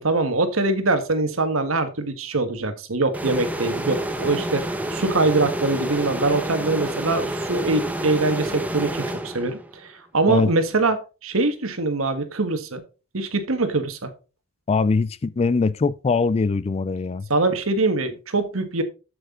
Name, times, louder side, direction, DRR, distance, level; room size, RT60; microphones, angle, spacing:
voice 1, 0.0-12.8 13.1-14.1 17.3-18.8, right 3 dB, 80° right, 1.5 m, -23 dB
sound 1, 3.1-9.8, right 1 dB, 5° right, 0.9 m, -29 dB
voice 2, 14.7-17.3, left 4 dB, 30° left, 0.3 m, -22 dB
7.9 x 7.8 x 3.7 m
head